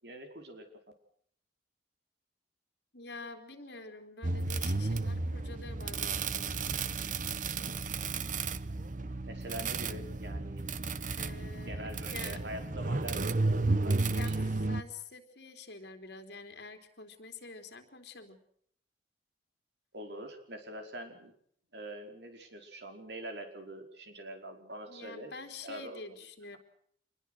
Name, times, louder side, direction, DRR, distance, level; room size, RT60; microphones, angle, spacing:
voice 1, 0.0-0.7 9.3-10.6 11.7-14.8 19.9-21.3 21.7-25.3 25.6-26.0, right 1 dB, 70° right, 5 dB, 4.8 m, -44 dB
voice 2, 2.9-6.6 11.1-12.4 14.1-18.4 24.9-26.6, left 3 dB, 65° left, 5 dB, 3.7 m, -47 dB
sound 1, 4.2-14.8, right 3 dB, 45° right, 1.0 m, -33 dB
26.5 x 21.5 x 6.5 m, 0.66 s
head